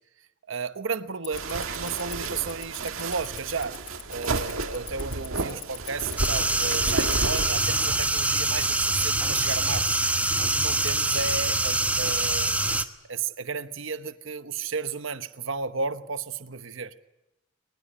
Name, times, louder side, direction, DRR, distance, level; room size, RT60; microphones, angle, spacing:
voice 1, 0.5-3.8 4.1-9.9 10.4-12.5 12.8-16.9, right 5 dB, 70° right, 1.0 m, -33 dB
Tick-tock, 1.2-11.1, left 16 dB, 65° left, 1.8 m, -38 dB
sound 1, 1.3-8.1, right 3 dB, 85° right, 1.8 m, -32 dB
sound 2, 6.2-12.8, right 2 dB, 5° right, 1.0 m, -25 dB
22.0 x 20.5 x 9.9 m
head